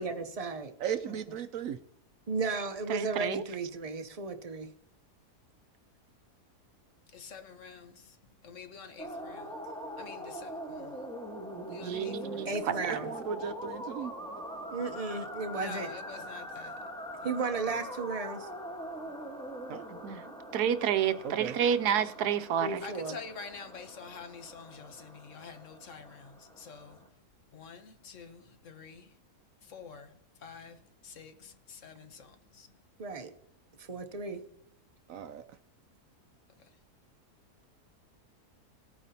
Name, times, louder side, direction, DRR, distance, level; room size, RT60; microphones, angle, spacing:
voice 1, 0.0-0.7 1.1-1.2 2.3-4.7 12.5-13.1 14.7-15.9 17.2-18.5 22.6-23.2 33.0-33.3 33.8-34.4, right 4 dB, 35° right, 0.6 m, -34 dB
voice 2, 0.8-1.8 12.8-14.1 17.5-17.6 19.7-19.9 21.2-21.6 35.1-35.4, right 8 dB, 70° right, 0.8 m, -36 dB
voice 3, 2.9-3.4 11.8-12.8 20.0-20.2 20.5-22.8, right 9 dB, 85° right, 1.2 m, -29 dB
voice 4, 7.1-7.9 8.4-9.5 10.0-10.9 11.7-12.5 15.5-16.7 22.8-26.3 26.6-27.0 27.5-29.0 29.7-30.1 30.4-30.8 31.0-32.7, left 5 dB, 55° left, 1.1 m, -47 dB
sound 1, 9.0-27.1, equal, 5° left, 1.1 m, -43 dB
18.5 x 9.1 x 2.8 m
omnidirectional pair, 1.7 m